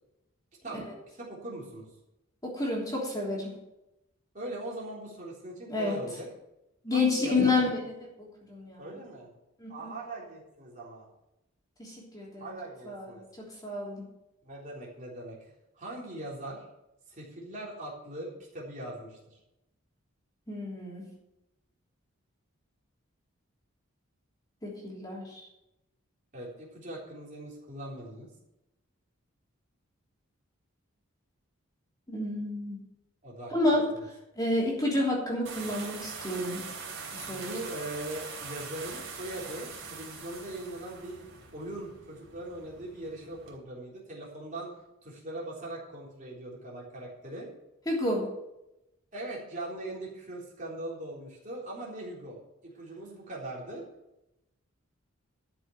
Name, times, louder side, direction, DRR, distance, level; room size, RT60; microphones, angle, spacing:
voice 1, 1.2-1.9 4.3-6.3 6.9-7.6 8.8-9.3 9.7-11.1 12.4-13.2 14.4-16.6 17.1-19.4 26.3-28.3 33.2-33.5 37.2-41.3 41.5-44.7 45.0-47.5 49.1-53.8, right 1 dB, 35° right, -4 dB, 3.6 m, -40 dB
voice 2, 2.4-3.6 5.7-6.0 6.8-8.9 9.6-9.9 11.8-12.5 12.8-14.1 20.5-21.1 24.6-25.5 32.1-32.8 33.5-36.6 37.1-37.6 47.8-48.3, left 2 dB, 20° left, -3 dB, 3.1 m, -30 dB
sound 1, 35.4-43.6, right 5 dB, 60° right, 3.4 m, -43 dB
12.5 x 6.1 x 8.0 m, 0.90 s
head